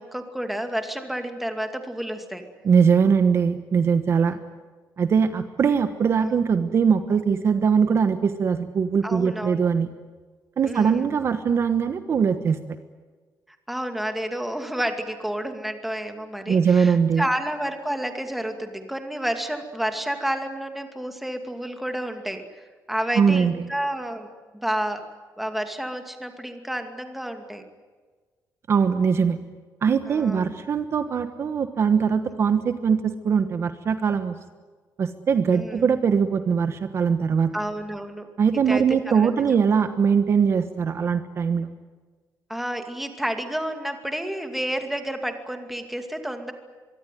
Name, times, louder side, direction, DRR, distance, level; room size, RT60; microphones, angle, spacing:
voice 1, 0.0-2.5 4.3-4.4 6.2-6.3 9.0-9.7 10.6-11.1 13.7-24.3 24.6-25.1 25.4-27.6 30.1-30.5 35.5-35.8 37.5-38.3 38.7-39.3 42.5-46.5, right 1 dB, ahead, 6 dB, 2.4 m, -30 dB
voice 2, 2.6-4.4 5.0-9.9 10.6-12.6 16.5-17.2 23.2-23.5 28.7-29.4 29.8-34.3 35.0-37.5 38.4-41.7, right 6 dB, 40° right, 9 dB, 1.2 m, -21 dB
24.5 x 23.0 x 9.3 m, 1.4 s
cardioid pair, 170°, 7 cm